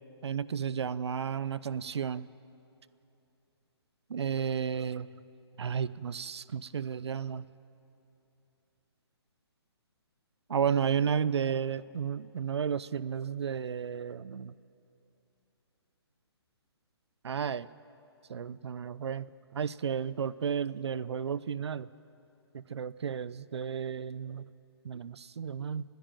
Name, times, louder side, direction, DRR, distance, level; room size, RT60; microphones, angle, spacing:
voice 1, 0.2-2.3 4.1-5.1 5.6-7.4 10.5-14.5 17.2-17.7 18.3-19.3 19.5-21.9 22.5-24.4 24.8-25.8, right 7 dB, 75° right, 18 dB, 0.5 m, -32 dB
29.0 x 10.5 x 8.9 m, 2.8 s
hypercardioid pair, 155°, 14 cm